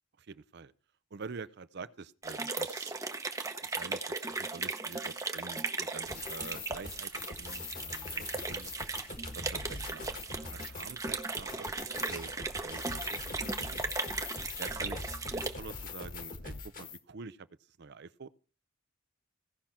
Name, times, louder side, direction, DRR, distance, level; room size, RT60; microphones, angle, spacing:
voice 1, 0.2-0.7 1.1-2.9 3.6-7.1 7.4-8.8 9.3-13.8 14.6-17.5 17.8-18.3, right 4 dB, 55° right, 0.6 m, -47 dB
sound 1, 2.2-15.6, right 3 dB, 15° right, 0.8 m, -37 dB
sound 2, 6.0-17.0, left 4 dB, 45° left, 1.6 m, -43 dB
16.5 x 5.8 x 4.4 m
head